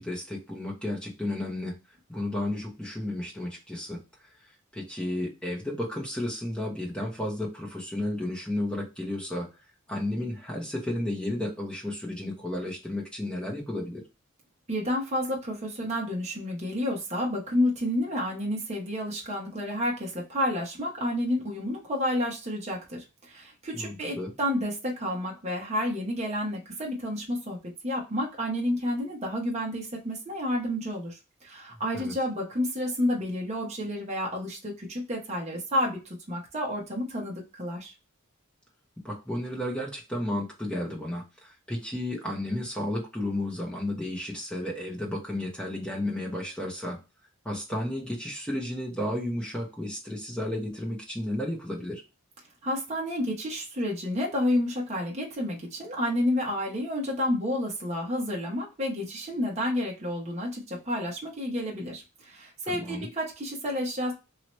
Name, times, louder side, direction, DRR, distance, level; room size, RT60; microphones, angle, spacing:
voice 1, 0.0-1.8 2.1-4.0 4.7-9.5 9.9-14.0 23.7-24.3 31.9-32.1 39.0-47.0 47.4-52.0 62.7-63.1, left 1 dB, 5° left, -3 dB, 1.0 m, -33 dB
voice 2, 14.7-27.6 27.8-37.9 52.6-64.1, left 1 dB, 30° right, -2 dB, 0.9 m, -30 dB
3.0 x 2.9 x 3.1 m, 0.27 s
head